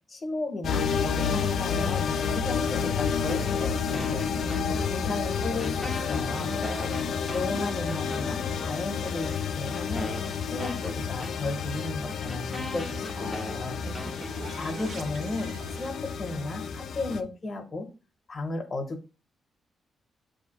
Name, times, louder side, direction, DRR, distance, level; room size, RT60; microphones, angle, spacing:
voice 1, 0.1-4.3 4.7-6.5 7.3-10.1 10.5-13.8 14.6-17.9 18.3-19.1, left 2 dB, 35° left, 5 dB, 0.9 m, -34 dB
sound 1, 0.6-17.2, left 6 dB, 70° left, 0.4 m, -30 dB
sound 2, 3.3-5.1 5.4-8.6 9.4-9.5 10.0-15.4, equal, 5° left, 0.7 m, -41 dB
voice 2, 4.1-4.9 6.3-7.6 13.1-14.6, right 4 dB, 45° right, 11 dB, 0.4 m, -44 dB
sound 3, 13.6-16.5, right 3 dB, 90° right, 1.0 m, -47 dB
6.8 x 2.7 x 2.9 m, 0.33 s
cardioid pair, 115°, 0 cm